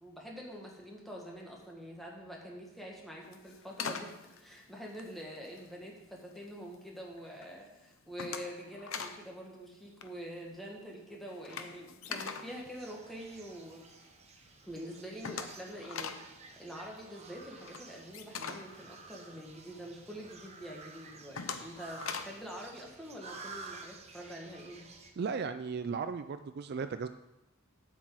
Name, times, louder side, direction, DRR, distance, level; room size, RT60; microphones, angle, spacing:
voice 1, 0.0-4.1 4.4-13.9 14.6-16.3 16.6-25.0, equal, ahead, -2 dB, 1.7 m, -46 dB
sound 1, 3.2-5.8 6.2-6.7 7.1-7.5 7.8-9.2 9.5-9.7 9.9-13.7 14.1-14.2 14.5-14.6 14.7-19.8 20.2-20.3 20.8-22.5, left 6 dB, 75° left, 0.8 m, -43 dB
sound 2, 12.5-25.1, right 4 dB, 30° right, 1.0 m, -52 dB
voice 2, 25.2-27.1, right 5 dB, 50° right, 11 dB, 0.3 m, -36 dB
8.2 x 6.2 x 7.7 m, 0.98 s
head